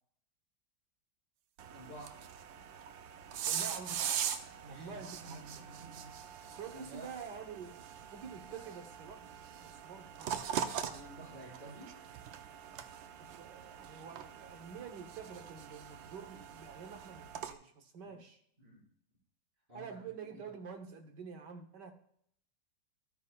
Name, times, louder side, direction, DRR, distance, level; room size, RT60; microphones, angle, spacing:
sound 1, 1.6-17.5, right 9 dB, 80° right, 1.4 m, -42 dB
voice 1, 1.7-2.2 4.6-6.2 6.7-7.1 8.5-8.7 10.9-12.0 18.0-18.2 18.6-18.8 19.7-20.5, right 1 dB, 25° right, -7 dB, 5.1 m, -52 dB
voice 2, 3.5-5.4 6.4-9.3 9.6-11.0 13.2-18.4 19.7-21.9, right 6 dB, 65° right, 6 dB, 1.6 m, -48 dB
13.5 x 9.6 x 2.3 m, 0.67 s
omnidirectional pair, 2.1 m